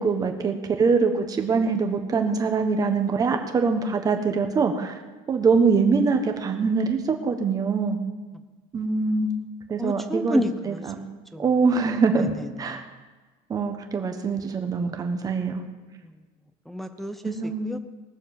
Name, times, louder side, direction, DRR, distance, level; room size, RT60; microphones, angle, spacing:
voice 1, 0.0-5.0 5.3-8.0 8.7-9.3 9.7-10.9 11.4-12.3 12.6-12.8 13.5-15.6 17.2-17.7, right 4 dB, 20° right, 5 dB, 1.3 m, -23 dB
voice 2, 9.8-10.8 11.3-11.6 12.2-12.9 16.0-16.2 16.7-17.8, equal, ahead, 6 dB, 0.7 m, -30 dB
19.5 x 7.1 x 7.1 m, 1.3 s
cardioid pair, 170°, 18 cm